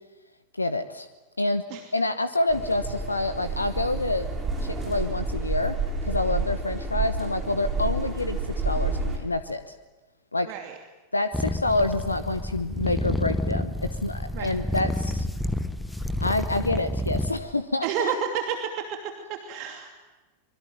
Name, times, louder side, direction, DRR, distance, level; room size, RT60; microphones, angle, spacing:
voice 1, 0.6-1.1 1.4-1.6 1.9-4.3 4.6-5.8 6.0-9.7 10.3-10.5 11.1-15.3 16.2-18.1, left 2 dB, 80° left, 13 dB, 1.1 m, -27 dB
sound 1, 2.5-9.2, right 3 dB, 15° right, 7.2 m, -29 dB
sound 2, 11.3-17.5, left 1 dB, 5° left, 1.5 m, -29 dB
voice 2, 17.8-19.9, right 7 dB, 45° right, 5 dB, 2.7 m, -30 dB
25.0 x 23.5 x 9.2 m, 1.2 s
figure-of-eight pair, 90°, 0 cm